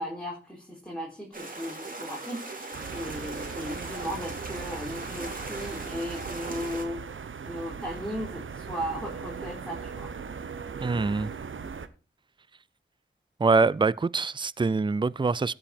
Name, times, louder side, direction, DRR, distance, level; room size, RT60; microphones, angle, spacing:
voice 1, 0.0-2.4 2.9-7.0 7.5-10.1, equal, 5° left, 4.0 m, -36 dB
sound 1, 1.3-6.8, right 2 dB, 45° right, 2.7 m, -39 dB
sound 2, 2.7-11.9, right 6 dB, 90° right, 0.8 m, -39 dB
voice 2, 10.8-11.3 13.4-15.5, right 4 dB, 25° right, 0.4 m, -24 dB
16.0 x 5.5 x 4.4 m
cardioid pair, 50°, 20 cm